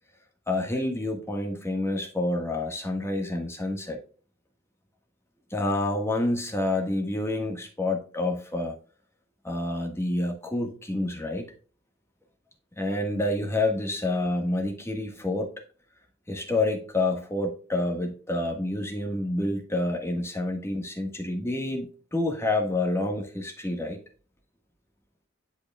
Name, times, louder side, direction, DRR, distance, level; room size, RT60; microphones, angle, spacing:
voice 1, 0.5-4.0 5.5-8.7 9.4-11.4 12.8-15.5 16.3-24.0, left 2 dB, 15° left, 2 dB, 1.5 m, -28 dB
11.0 x 4.9 x 2.3 m, 0.39 s
head